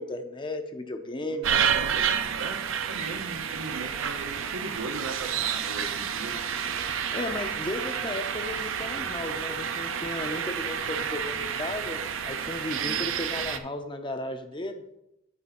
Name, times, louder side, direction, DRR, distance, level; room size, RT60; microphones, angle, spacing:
voice 1, 0.0-1.5 7.1-14.8, left 1 dB, 20° left, 7 dB, 0.6 m, -35 dB
voice 2, 1.3-2.0 2.4-2.6 2.9-6.4 12.7-13.1, right 3 dB, 80° right, 6 dB, 0.9 m, -38 dB
sound 1, 1.4-13.6, right 8 dB, 65° right, 0.5 m, -30 dB
9.4 x 3.3 x 6.1 m, 0.86 s
head